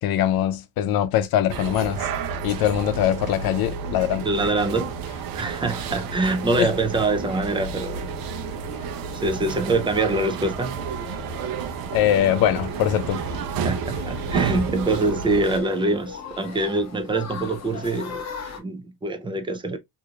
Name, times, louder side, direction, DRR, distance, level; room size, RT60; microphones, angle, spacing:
voice 1, 0.0-2.1 2.4-4.3 6.6-6.7 11.9-13.2, left 11 dB, 85° left, 0.6 m, -22 dB
sound 1, 1.5-15.6, right 6 dB, 75° right, 0.7 m, -31 dB
voice 2, 4.2-4.9 5.3-8.2 9.1-10.8 13.6-18.2 18.6-19.8, right 2 dB, 15° right, 0.5 m, -24 dB
sound 2, 4.6-18.6, left 5 dB, 45° left, 1.4 m, -42 dB
4.7 x 2.7 x 2.3 m
cardioid pair, 165°, 35 cm